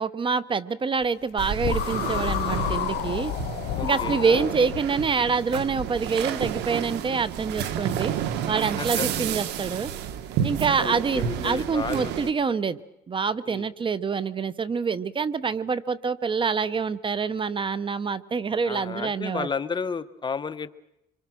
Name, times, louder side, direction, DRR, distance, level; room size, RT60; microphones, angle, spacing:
voice 1, 0.0-3.3 3.8-8.1 8.5-9.9 10.4-12.8 13.1-19.5, right 5 dB, 30° right, 17 dB, 0.9 m, -26 dB
sound 1, 1.4-12.3, right 9 dB, 90° right, 1.5 m, -31 dB
sound 2, 1.6-4.8, left 15 dB, 80° left, 0.9 m, -30 dB
voice 2, 3.8-4.5 8.8-9.1 10.4-10.5 10.8-12.1 12.4-12.6 13.5-13.7 18.6-20.7, left 5 dB, 25° left, 11 dB, 1.1 m, -32 dB
26.5 x 24.0 x 6.2 m, 0.86 s
cardioid pair, 110°, 17 cm